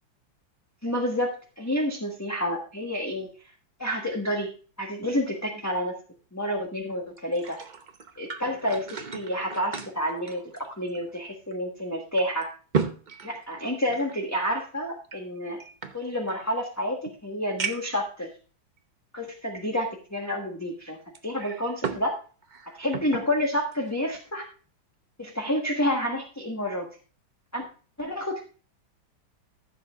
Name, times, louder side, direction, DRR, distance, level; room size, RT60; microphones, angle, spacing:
voice 1, 0.8-3.3 3.8-4.5 4.8-5.9 6.3-7.6 8.2-12.5 13.2-15.6 15.9-18.3 19.1-21.0 21.2-22.2 22.7-24.5 25.2-26.9 27.5-27.6 28.0-28.4, equal, 10° left, 1 dB, 1.1 m, -29 dB
sound 1, 7.2-11.2 11.5-11.6 12.2-14.2 15.0-16.5 17.0-17.1 17.6-18.0 18.8-18.9 21.1-22.1 22.4-23.3 23.7-23.9, right 5 dB, 40° right, 0.6 m, -35 dB
15.0 x 7.5 x 2.4 m, 0.37 s
omnidirectional pair, 2.1 m